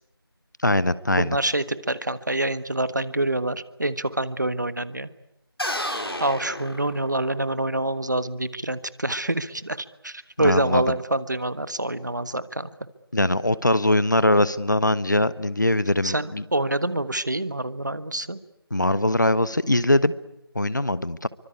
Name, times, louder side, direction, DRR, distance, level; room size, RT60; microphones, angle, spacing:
voice 1, 0.6-1.4 10.4-10.9 13.1-16.4 18.7-20.1 20.5-21.3, left 1 dB, 50° left, 17 dB, 1.0 m, -21 dB
voice 2, 1.2-5.1 6.2-12.7 16.0-18.4, right 1 dB, 45° right, 14 dB, 1.4 m, -26 dB
sound 1, 5.6-7.5, left 1 dB, 70° left, 5.4 m, -31 dB
27.0 x 24.5 x 8.4 m, 0.85 s
figure-of-eight pair, 170°, 13 cm